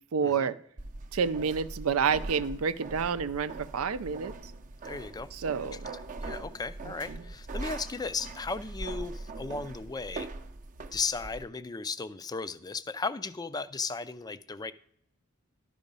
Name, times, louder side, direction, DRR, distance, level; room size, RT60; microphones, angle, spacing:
voice 1, 0.1-0.6 1.1-4.3 5.4-5.9, right 6 dB, 85° right, 13 dB, 0.5 m, -29 dB
sound 1, 0.8-11.4, right 2 dB, 40° right, 0.6 m, -41 dB
voice 2, 4.8-5.3 5.6-10.3 10.9-14.7, left 4 dB, 20° left, 14 dB, 0.4 m, -36 dB
12.0 x 5.0 x 5.4 m, 0.68 s
head